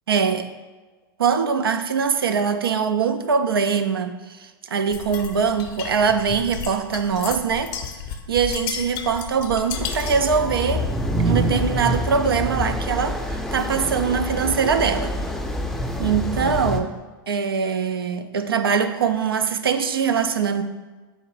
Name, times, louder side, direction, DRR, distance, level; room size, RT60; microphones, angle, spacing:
voice 1, 0.1-0.5 1.2-7.7 8.3-10.9 11.2-15.1 16.0-16.9 17.3-20.6, right 6 dB, 90° right, 8 dB, 0.4 m, -22 dB
sound 1, 4.9-10.3, left 7 dB, 45° left, 0.6 m, -33 dB
sound 2, 9.7-16.8, equal, ahead, 0.4 m, -26 dB
4.1 x 2.5 x 4.7 m, 1.3 s
hypercardioid pair, 100°, 12 cm